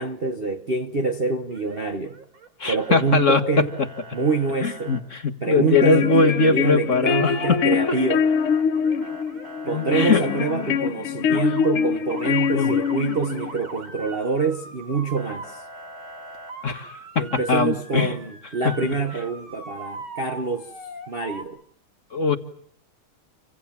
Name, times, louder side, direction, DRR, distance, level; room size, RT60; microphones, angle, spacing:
voice 1, 0.0-2.2 2.7-3.7 4.1-5.0 5.4-8.3 9.7-15.6 17.2-20.7 21.1-21.6, right 4 dB, 35° right, 1.0 m, -26 dB
Motor vehicle (road) / Siren, 1.5-2.5 2.8-3.3 3.7-5.0 6.8-7.5 7.7-10.7 11.2-11.7 12.1-21.4, right 2 dB, 65° right, 4.1 m, -40 dB
voice 2, 2.6-3.7 4.6-7.6 9.9-10.2 11.3-11.4 12.5-12.8 16.6-18.1 18.6-18.7 22.1-22.4, left 4 dB, 40° left, 1.7 m, -21 dB
sound 1, 5.5-13.5, left 7 dB, 90° left, 2.4 m, -24 dB
28.0 x 25.5 x 7.3 m
omnidirectional pair, 2.4 m